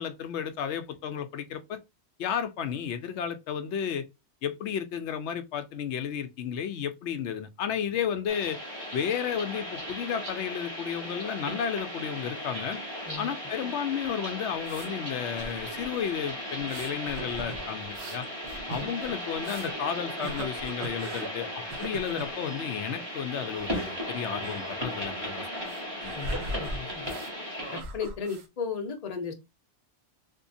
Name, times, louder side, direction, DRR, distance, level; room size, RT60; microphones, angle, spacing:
voice 1, 0.0-1.8 2.2-4.1 4.4-8.6 8.9-12.8 13.2-18.2 18.7-25.5 26.0-26.2, left 8 dB, 70° left, 0.8 m, -32 dB
sound 1, 8.3-27.8, equal, 20° right, 1.1 m, -37 dB
sound 2, 14.0-14.9 15.4-16.0 16.6-19.8 20.2-21.3 21.7-22.3 23.6-23.9 24.4-24.6 24.9-25.1 25.7-27.3 27.6-28.5, right 2 dB, 65° right, 0.9 m, -39 dB
voice 2, 26.1-27.1 27.7-29.3, left 6 dB, 40° left, 0.7 m, -35 dB
3.6 x 2.7 x 2.6 m
omnidirectional pair, 1.3 m